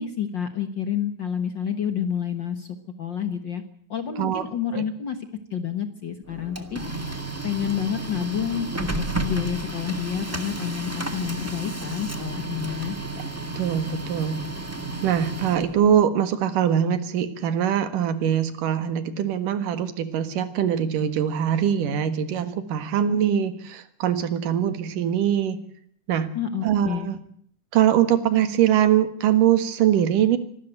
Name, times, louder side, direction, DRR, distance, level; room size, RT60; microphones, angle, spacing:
voice 1, 0.0-2.7 3.0-3.6 3.9-5.2 5.5-6.8 7.4-8.9 9.2-13.0 26.3-27.1, left 8 dB, 50° left, 9 dB, 1.4 m, -29 dB
Printer, 6.3-16.0, right 2 dB, 10° right, 0.8 m, -32 dB
voice 2, 13.4-14.4 15.0-25.6 26.1-26.3 26.6-27.2 27.7-30.4, right 9 dB, 90° right, 11 dB, 3.2 m, -22 dB
25.5 x 12.5 x 9.0 m, 0.63 s
omnidirectional pair, 3.6 m